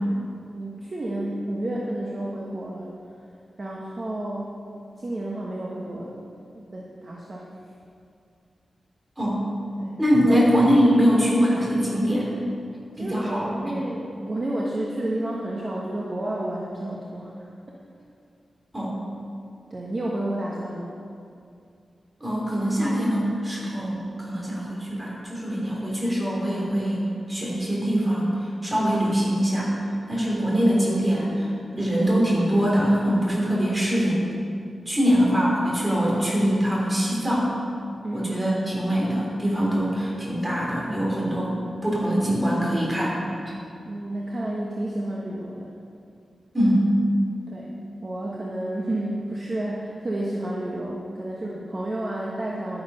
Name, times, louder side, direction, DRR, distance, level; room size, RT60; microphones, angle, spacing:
voice 1, 0.5-3.1 3.6-4.6 5.0-6.3 6.7-7.5 9.8-10.0 10.2-10.5 12.9-17.3 17.7-17.8 19.7-20.9 34.9-35.1 38.0-38.3 43.8-45.7 47.5-47.7 48.0-52.8, right 1 dB, 30° right, -4 dB, 1.3 m, -31 dB
voice 2, 9.2-9.5 10.0-12.3 13.0-13.7 18.7-18.9 22.2-27.0 27.3-28.3 28.6-29.7 30.1-31.5 31.8-34.2 34.9-37.5 38.1-41.5 41.8-43.2 46.5-46.9, equal, 15° right, -5 dB, 3.4 m, -23 dB
11.5 x 9.8 x 5.6 m, 2.4 s
wide cardioid pair, 155°, 0 cm